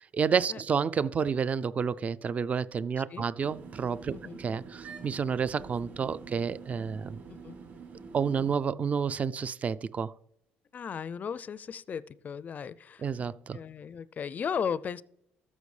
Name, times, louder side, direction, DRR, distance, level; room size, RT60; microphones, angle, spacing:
voice 1, 0.0-7.2 8.1-10.1 13.0-13.6, right 6 dB, 35° right, 0.4 m, -30 dB
sound 1, 3.4-8.6, right 5 dB, 55° right, 4.0 m, -46 dB
voice 2, 10.7-13.1 13.5-15.0, left 7 dB, 40° left, 0.4 m, -36 dB
13.5 x 6.4 x 3.3 m
supercardioid pair, 75°, 4 cm